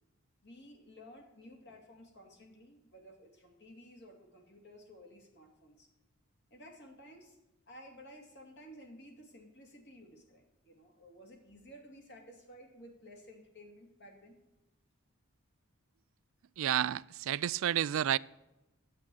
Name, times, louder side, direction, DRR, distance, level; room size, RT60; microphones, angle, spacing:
voice 1, 0.4-5.9 6.5-7.4 7.7-14.3, equal, 50° left, 2.6 m, -54 dB
voice 2, 16.6-18.2, right 10 dB, 65° right, 0.3 m, -30 dB
10.5 x 8.7 x 6.2 m
head